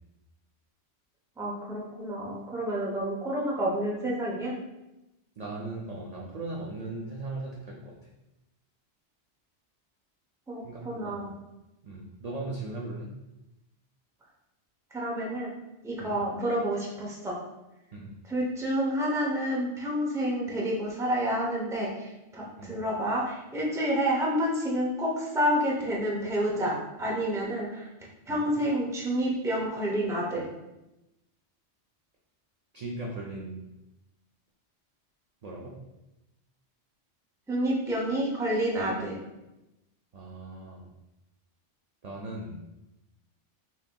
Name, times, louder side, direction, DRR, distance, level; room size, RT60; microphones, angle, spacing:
voice 1, 1.4-4.5 10.5-11.3 14.9-15.5 15.8-17.4 18.3-27.9 28.3-30.4 37.5-39.2, equal, 5° right, -4 dB, 0.5 m, -29 dB
voice 2, 5.4-7.9 10.6-11.2 11.8-13.1 16.0-16.2 17.9-18.1 22.6-22.8 28.3-28.5 32.7-33.6 35.4-35.7 40.1-40.9 42.0-42.6, right 2 dB, 55° right, -3 dB, 0.4 m, -38 dB
5.8 x 2.7 x 2.2 m, 0.96 s
omnidirectional pair, 1.2 m